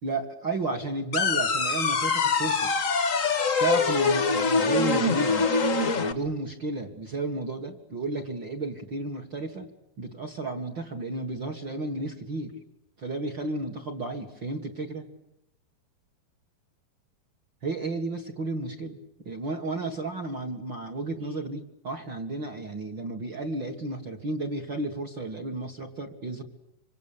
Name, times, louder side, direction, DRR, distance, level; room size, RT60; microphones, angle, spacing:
voice 1, 0.0-2.7 3.6-5.5 5.9-9.7 10.0-12.6 13.0-15.1 17.6-19.0 19.2-26.4, right 2 dB, 40° right, 7 dB, 1.9 m, -32 dB
sound 1, 1.1-6.1, left 4 dB, 55° left, 0.8 m, -24 dB
26.0 x 25.5 x 8.7 m, 0.83 s
omnidirectional pair, 4.5 m